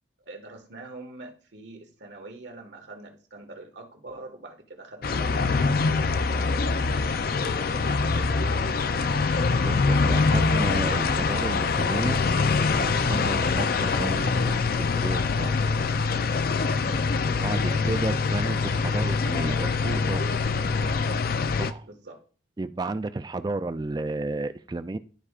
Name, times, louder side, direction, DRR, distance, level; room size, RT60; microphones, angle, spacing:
voice 1, 0.2-6.3 7.4-8.6 17.2-17.9 21.8-22.2, right 2 dB, 75° right, 1.6 m, -44 dB
sound 1, 5.0-21.7, left 4 dB, 55° left, 0.4 m, -24 dB
voice 2, 9.6-12.2 12.8-15.7 17.3-20.3 21.6-21.9 22.6-25.0, right 2 dB, 20° right, 0.3 m, -32 dB
12.5 x 4.8 x 2.4 m
head